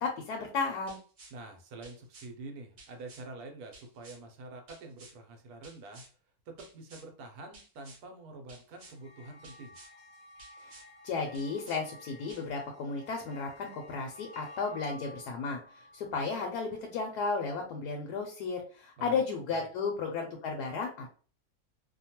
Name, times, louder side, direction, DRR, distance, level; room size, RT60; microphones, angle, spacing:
voice 1, 0.0-1.0 11.0-21.1, left 4 dB, 90° left, 1 dB, 1.1 m, -34 dB
sound 1, 0.9-1.3 1.8-2.3 2.8-3.2 3.7-4.2 4.7-5.1 5.6-6.1 6.6-7.1 7.5-8.0 8.5-9.0 9.4-9.9 10.4-10.9 11.3-11.8 12.3-12.4, right 2 dB, 55° right, 0.9 m, -54 dB
voice 2, 1.3-6.0 6.5-9.7 19.0-19.2 19.5-19.6, right 2 dB, 75° right, 4 dB, 1.1 m, -46 dB
sound 2, 8.8-17.4, left 1 dB, 45° left, 0.6 m, -53 dB
2.8 x 2.2 x 2.8 m, 0.40 s
omnidirectional pair, 1.6 m